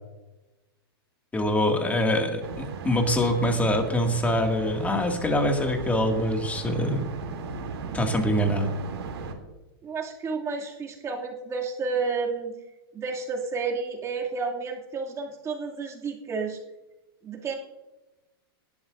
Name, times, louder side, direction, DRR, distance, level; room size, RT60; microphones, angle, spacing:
voice 1, 1.3-7.0 7.9-8.7, left 1 dB, 10° left, 3 dB, 2.2 m, -24 dB
sound 1, 2.4-9.3, right 4 dB, 90° right, 3.0 m, -36 dB
voice 2, 9.8-12.5 12.9-16.6 17.2-17.5, right 4 dB, 20° right, -1 dB, 2.6 m, -31 dB
19.0 x 12.0 x 2.6 m, 1.1 s
hypercardioid pair, 130°, 13 cm